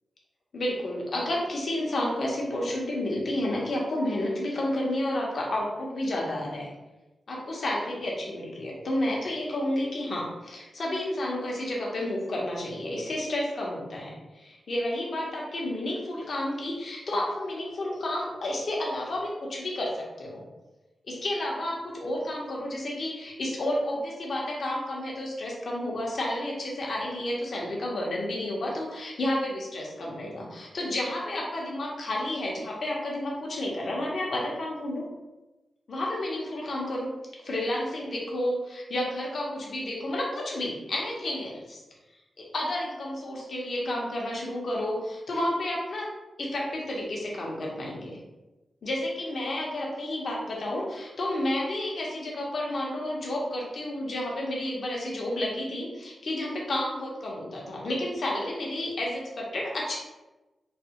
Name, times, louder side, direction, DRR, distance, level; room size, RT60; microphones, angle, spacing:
voice 1, 0.5-6.7 7.3-20.4 21.1-35.0 35.9-37.1 37.4-41.8 42.4-46.1 46.4-48.2 48.8-60.0, left 1 dB, 65° left, -3 dB, 0.9 m, -31 dB
3.2 x 2.3 x 2.9 m, 1.1 s
cardioid pair, 60°, 0 cm